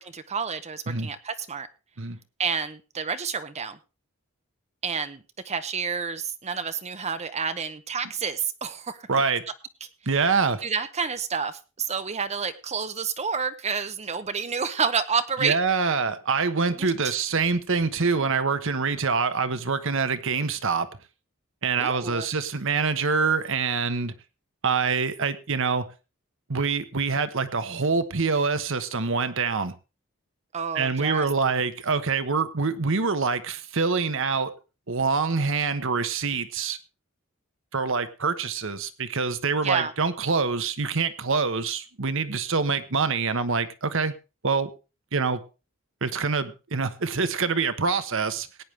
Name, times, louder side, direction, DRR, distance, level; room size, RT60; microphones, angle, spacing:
voice 1, 0.1-1.7 2.4-3.8 4.8-9.1 10.6-15.6 16.8-16.9 21.8-22.3 30.5-31.3 39.6-39.9, right 6 dB, 30° right, 11 dB, 0.8 m, -29 dB
voice 2, 9.1-9.5 10.1-10.6 15.4-20.9 21.6-24.1 24.6-25.9 26.5-29.7 30.7-34.5 34.9-36.8 37.7-44.1 44.4-44.7 45.1-45.4 46.0-48.6, right 4 dB, 65° right, 11 dB, 1.2 m, -25 dB
18.5 x 9.3 x 3.3 m, 0.30 s
head